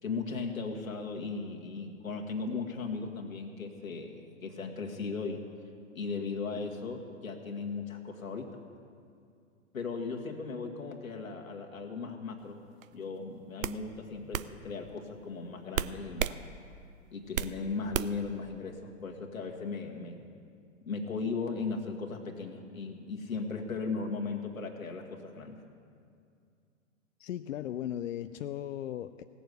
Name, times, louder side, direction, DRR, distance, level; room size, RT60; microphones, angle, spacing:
voice 1, 0.0-5.4 5.9-8.6 9.7-12.6 12.9-16.4 17.1-20.2 20.8-25.6, left 4 dB, 90° left, 2 dB, 1.8 m, -37 dB
sound 1, 12.8-13.0 13.6-13.8 14.3-14.5 15.7-16.4 16.8-17.6 17.9-18.3, right 10 dB, 75° right, 0.6 m, -32 dB
voice 2, 27.2-29.2, left 11 dB, 70° left, 10 dB, 0.5 m, -37 dB
17.0 x 7.0 x 8.0 m, 2.3 s
hypercardioid pair, 125°, 40 cm